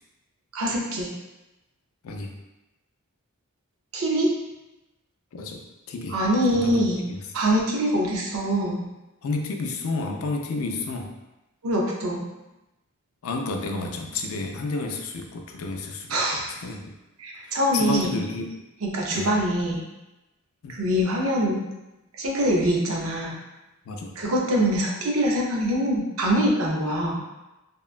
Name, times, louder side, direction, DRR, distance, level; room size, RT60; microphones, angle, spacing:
voice 1, 0.5-1.1 3.9-4.3 6.1-7.0 7.3-8.8 11.6-12.3 16.1-16.5 17.2-18.1 18.8-19.8 20.8-21.6 22.2-23.4 24.2-27.2, equal, 80° right, -2 dB, 0.6 m, -24 dB
voice 2, 5.3-6.2 6.5-7.3 9.2-11.1 13.2-16.9 17.3-18.6 19.1-19.3 20.6-20.8 23.9-24.2, left 3 dB, 80° left, 3 dB, 0.4 m, -31 dB
2.8 x 2.1 x 2.4 m, 0.99 s
head